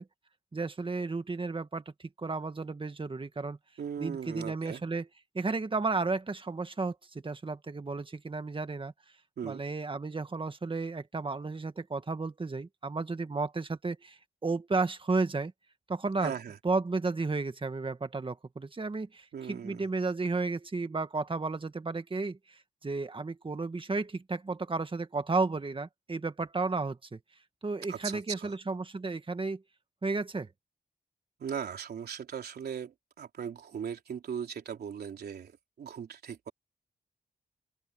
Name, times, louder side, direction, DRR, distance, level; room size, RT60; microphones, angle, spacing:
voice 1, 0.5-3.6 4.0-5.1 5.3-8.9 9.4-15.5 15.9-16.3 16.6-27.2 27.6-29.6 30.0-30.5, right 3 dB, 35° right, 1.9 m, -33 dB
voice 2, 3.8-4.8 9.4-9.6 16.2-16.6 19.3-19.8 27.9-28.6 31.4-36.5, right 8 dB, 85° right, 3.6 m, -38 dB
open air
cardioid pair, 70°, 16 cm